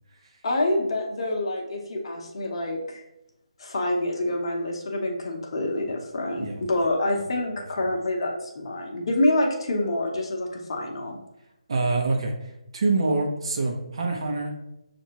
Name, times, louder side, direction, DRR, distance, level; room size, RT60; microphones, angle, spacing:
voice 1, 0.4-3.0 3.6-11.2, left 1 dB, 45° left, 1 dB, 0.8 m, -27 dB
voice 2, 11.7-12.3 12.7-14.5, right 3 dB, 50° right, 1 dB, 0.8 m, -25 dB
6.2 x 2.5 x 2.9 m, 0.87 s
figure-of-eight pair, 150°, 4 cm